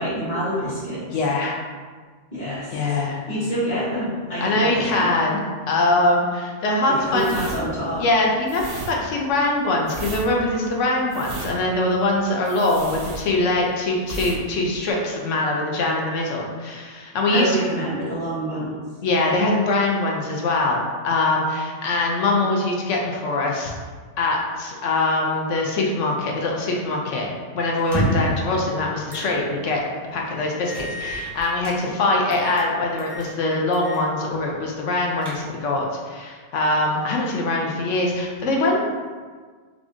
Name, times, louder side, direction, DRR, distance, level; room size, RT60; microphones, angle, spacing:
voice 1, 0.0-1.0 2.3-2.8 3.3-5.2 6.9-8.0 17.3-18.8 28.0-28.3, right 1 dB, 35° left, -11 dB, 1.4 m, -27 dB
voice 2, 1.1-1.5 2.7-3.2 4.4-5.4 5.7-7.3 8.0-17.6 19.0-23.7 24.2-27.3 27.5-29.8 30.1-38.8, left 2 dB, 65° left, -1 dB, 0.9 m, -23 dB
sound 1, 7.1-13.7 14.0-14.4 14.7-14.9, right 3 dB, 85° right, 1.1 m, -35 dB
sound 2, 27.8-28.4 29.1-29.3 29.7-29.8 30.7-31.8 32.3-32.7 33.0-33.3 33.7-34.1 34.4-34.5 35.0-35.7, right 1 dB, 25° right, 0.6 m, -29 dB
4.9 x 2.4 x 2.5 m, 1.5 s
omnidirectional pair, 1.5 m